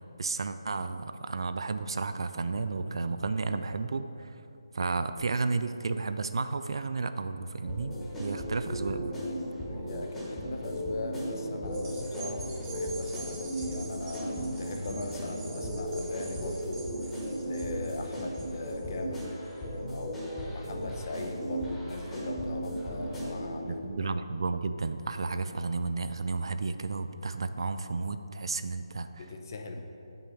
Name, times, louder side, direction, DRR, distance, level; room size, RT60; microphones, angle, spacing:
voice 1, 0.2-4.4 4.7-7.9 8.2-9.1 23.6-29.2, right 3 dB, 65° right, 10 dB, 0.4 m, -32 dB
sound 1, 7.6-23.6, equal, 5° left, 1.2 m, -36 dB
voice 2, 9.7-16.8 17.4-19.3 19.9-24.1 29.2-29.8, left 2 dB, 40° left, 4 dB, 0.7 m, -40 dB
sound 2, 11.7-20.3 20.8-20.9, right 4 dB, 20° right, 1.1 m, -48 dB
6.0 x 5.6 x 5.1 m, 2.8 s
figure-of-eight pair, 160°, 3 cm